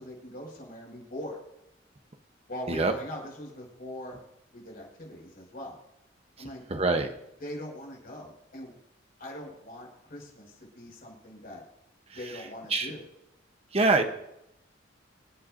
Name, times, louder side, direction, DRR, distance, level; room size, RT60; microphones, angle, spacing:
voice 1, 0.0-1.4 2.5-4.2 4.5-5.8 6.4-6.6 7.4-8.7 9.2-11.6 12.1-13.1, left 1 dB, 50° left, 0 dB, 5.7 m, -41 dB
voice 2, 6.7-7.1 12.7-12.9 13.7-14.0, right 3 dB, 30° right, 6 dB, 0.9 m, -24 dB
27.5 x 9.2 x 2.6 m, 0.83 s
head